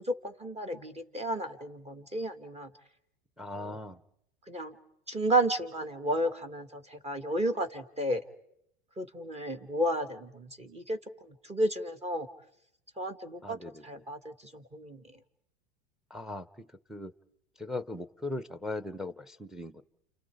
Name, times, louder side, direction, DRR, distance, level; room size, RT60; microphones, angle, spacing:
voice 1, 0.0-2.7 3.6-3.8 4.5-4.7 5.1-8.2 9.0-12.3 13.0-15.0, right 1 dB, 20° right, 8 dB, 2.5 m, -32 dB
voice 2, 3.4-4.0 13.4-14.0 16.1-16.5 16.9-17.1 17.6-19.8, left 2 dB, ahead, 13 dB, 1.0 m, -39 dB
29.5 x 29.0 x 5.1 m, 0.78 s
hypercardioid pair, 110°, 31 cm